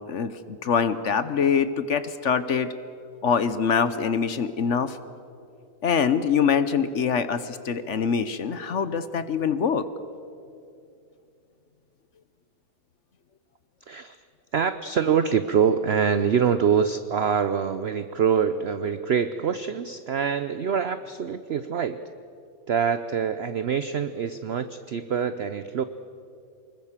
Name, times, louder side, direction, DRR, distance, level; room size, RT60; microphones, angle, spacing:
voice 1, 0.1-2.7 3.2-5.0 5.8-9.9, left 6 dB, 55° left, 13 dB, 1.0 m, -24 dB
voice 2, 13.9-14.2 14.5-22.0 22.7-25.8, right 7 dB, 60° right, 11 dB, 0.7 m, -25 dB
24.5 x 21.0 x 7.4 m, 2.5 s
omnidirectional pair, 1.8 m